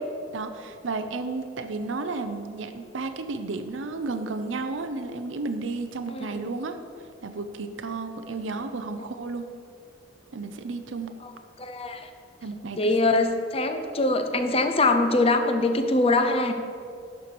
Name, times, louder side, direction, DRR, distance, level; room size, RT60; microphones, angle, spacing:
voice 1, 0.3-6.8 7.2-9.5 10.3-11.1 12.4-12.9, right 3 dB, 90° right, 7 dB, 0.6 m, -32 dB
voice 2, 6.1-6.4 11.2-11.3 11.6-12.0 12.8-16.5, left 2 dB, 30° left, 7 dB, 0.7 m, -23 dB
11.0 x 4.6 x 6.8 m, 2.4 s
head